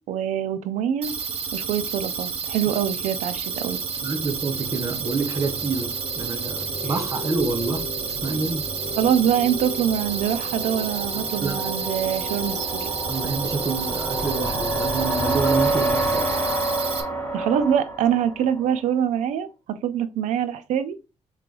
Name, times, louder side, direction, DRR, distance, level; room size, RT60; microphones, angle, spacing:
voice 1, 0.1-1.1 1.5-3.8 9.0-12.9 17.3-21.0, right 9 dB, 85° right, 0.5 m, -24 dB
sound 1, 1.0-17.0, right 6 dB, 55° right, 0.8 m, -30 dB
sound 2, 3.8-18.8, right 1 dB, 20° left, 1.8 m, -30 dB
voice 2, 4.0-7.8 8.1-8.6 11.4-11.6 13.1-16.3, right 3 dB, 25° right, 0.9 m, -28 dB
3.8 x 3.2 x 3.8 m
cardioid pair, 120°, 12 cm